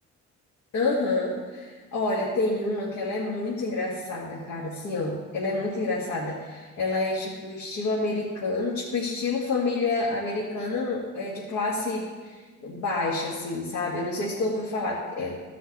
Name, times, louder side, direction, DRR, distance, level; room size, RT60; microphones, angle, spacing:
voice 1, 0.7-15.4, left 3 dB, 65° left, -6 dB, 2.1 m, -28 dB
15.0 x 5.7 x 4.3 m, 1.4 s
cardioid pair, 90°, 30 cm